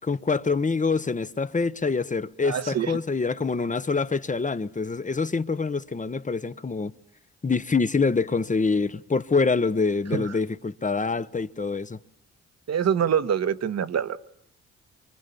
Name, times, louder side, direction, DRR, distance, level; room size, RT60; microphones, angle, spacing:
voice 1, 0.0-6.9 7.4-12.0, left 4 dB, 25° left, 1.1 m, -25 dB
voice 2, 2.5-2.9 10.1-10.2 12.7-14.2, right 8 dB, 60° right, 1.5 m, -25 dB
25.5 x 25.0 x 7.0 m
supercardioid pair, 60°, 29 cm